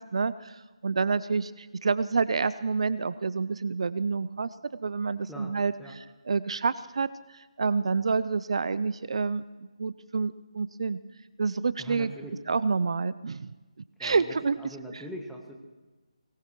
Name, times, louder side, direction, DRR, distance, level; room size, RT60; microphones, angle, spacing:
voice 1, 0.0-11.0 11.4-12.1 12.5-13.5 14.0-14.7, right 4 dB, 60° right, 16 dB, 0.5 m, -28 dB
voice 2, 5.3-6.0 11.8-12.4 14.0-15.6, equal, ahead, 1 dB, 1.3 m, -42 dB
23.5 x 19.5 x 3.1 m, 1.2 s
figure-of-eight pair, 160°, 4 cm